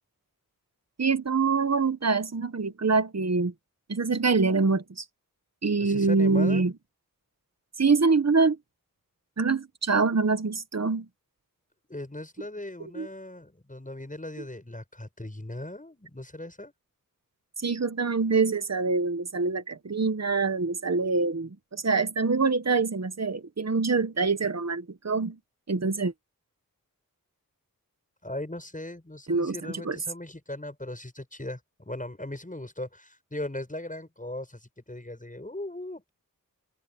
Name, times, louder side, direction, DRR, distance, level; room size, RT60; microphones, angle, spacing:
voice 1, 1.0-3.5 3.9-5.0 5.6-6.7 7.8-8.6 9.4-11.1 12.9-13.1 17.6-25.4 25.7-26.1 29.3-29.6 29.8-30.0, right 4 dB, 50° right, 1.3 m, -25 dB
voice 2, 5.8-6.7 11.9-16.7 28.2-36.1, left 1 dB, 25° left, 6.9 m, -38 dB
wide cardioid pair, 65°, 35 cm